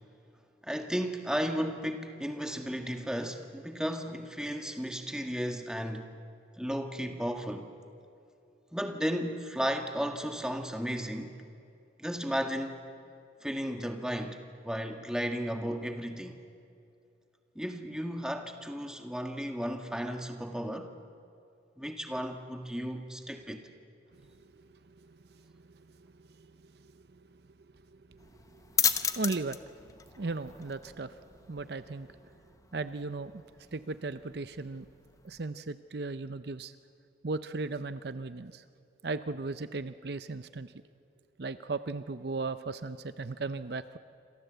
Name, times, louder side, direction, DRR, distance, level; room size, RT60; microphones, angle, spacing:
voice 1, 0.6-6.1 6.6-7.7 8.7-11.3 12.0-12.8 13.4-14.4 14.6-16.4 17.5-20.9 21.8-23.7, equal, 5° right, 5 dB, 1.6 m, -34 dB
voice 2, 25.5-26.5 26.8-26.9 28.1-28.6 29.1-29.6 30.2-31.2 31.5-32.1 32.7-33.4 33.7-34.9 35.2-36.7 37.2-38.6 39.0-40.7 41.4-44.0, right 3 dB, 55° right, 12 dB, 0.6 m, -37 dB
sound 1, 28.2-35.4, left 6 dB, 15° left, 0.9 m, -36 dB
28.0 x 26.5 x 8.1 m, 2.6 s
head